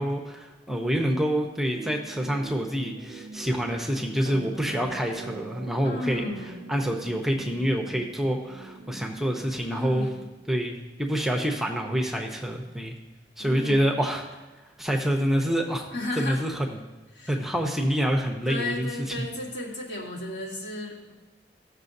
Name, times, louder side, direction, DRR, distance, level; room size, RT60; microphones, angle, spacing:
voice 1, 0.0-6.2 6.7-10.1 10.5-13.0 13.4-14.4 14.8-15.9 16.2-16.7 17.3-18.9 19.2-19.3, equal, ahead, 1 dB, 0.8 m, -27 dB
sound 1, 1.7-10.6, right 4 dB, 60° right, 0.4 m, -43 dB
voice 2, 5.8-6.5 9.7-10.1 13.4-13.9 15.9-16.4 17.1-17.4 18.5-21.1, left 2 dB, 75° left, -5 dB, 2.5 m, -34 dB
15.5 x 6.5 x 2.7 m, 1.1 s
head